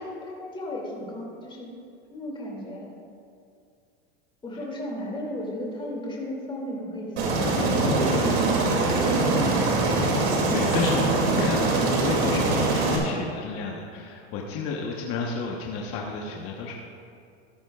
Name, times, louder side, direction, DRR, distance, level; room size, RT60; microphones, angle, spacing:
voice 1, 0.0-1.7 2.1-2.9 4.4-9.3 14.5-14.8, left 1 dB, 15° left, -3 dB, 2.5 m, -34 dB
Aircraft, 7.2-13.0, right 2 dB, 85° right, 2.6 m, -23 dB
voice 2, 10.5-16.8, left 5 dB, 45° left, -1 dB, 1.1 m, -31 dB
14.5 x 12.5 x 2.4 m, 2.4 s
supercardioid pair, 120°, 32 cm